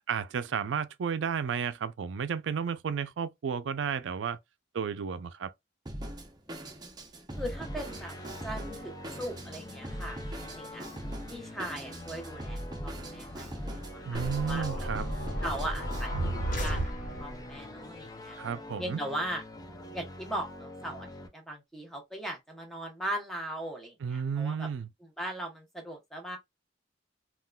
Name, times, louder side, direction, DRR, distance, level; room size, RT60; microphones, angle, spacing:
voice 1, 0.1-4.4 4.7-5.5 14.0-15.1 18.4-19.0 24.0-24.9, right 6 dB, 75° right, 0.4 m, -32 dB
Drum kit, 5.9-16.1, right 1 dB, 20° right, 0.6 m, -41 dB
voice 2, 6.5-6.9 7.3-8.2 8.4-10.9 11.3-14.9 15.4-18.4 18.8-19.4 19.9-21.1 21.3-24.7 25.2-26.4, right 1 dB, ahead, 0.9 m, -39 dB
sound 1, 7.3-21.3, left 1 dB, 20° left, 0.5 m, -45 dB
sound 2, 14.1-17.5, right 1 dB, 45° left, 1.3 m, -33 dB
3.7 x 2.3 x 2.2 m
head